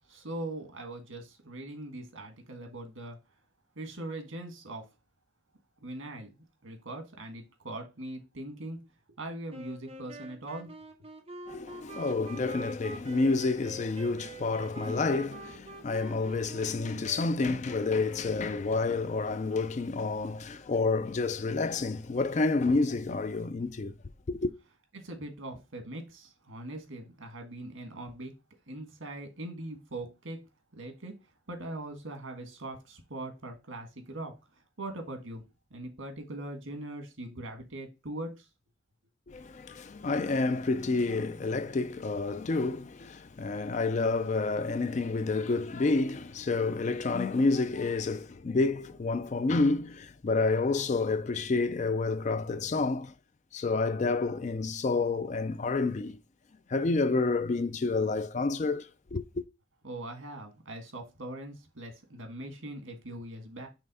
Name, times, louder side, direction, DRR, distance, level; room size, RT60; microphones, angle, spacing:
voice 1, 0.1-3.2 3.7-4.8 5.8-8.8 9.2-10.7 24.9-28.3 28.7-30.4 30.7-31.1 31.5-34.3 34.8-35.4 35.7-38.4 59.8-63.7, right 1 dB, 80° right, 1.6 m, -41 dB
sound 1, 9.5-18.7, right 2 dB, 30° right, 0.9 m, -46 dB
voice 2, 11.5-23.9 24.3-24.5 39.3-53.1 53.5-56.2 56.7-59.4, left 3 dB, 35° left, 0.4 m, -29 dB
5.5 x 3.4 x 5.4 m
head